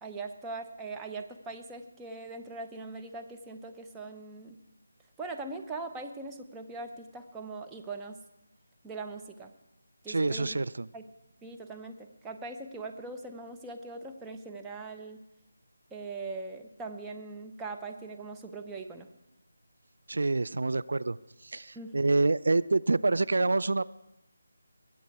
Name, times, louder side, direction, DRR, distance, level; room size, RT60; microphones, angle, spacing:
voice 1, 0.0-4.6 5.2-8.2 8.8-9.5 10.0-10.6 10.9-11.0 11.4-15.2 15.9-19.1 21.7-22.1, right 3 dB, 10° right, 3 dB, 0.7 m, -41 dB
voice 2, 10.1-10.9 20.1-21.2 21.4-23.9, right 3 dB, 70° right, 18 dB, 0.4 m, -27 dB
21.5 x 8.4 x 4.7 m, 0.90 s
figure-of-eight pair, 165°, 0 cm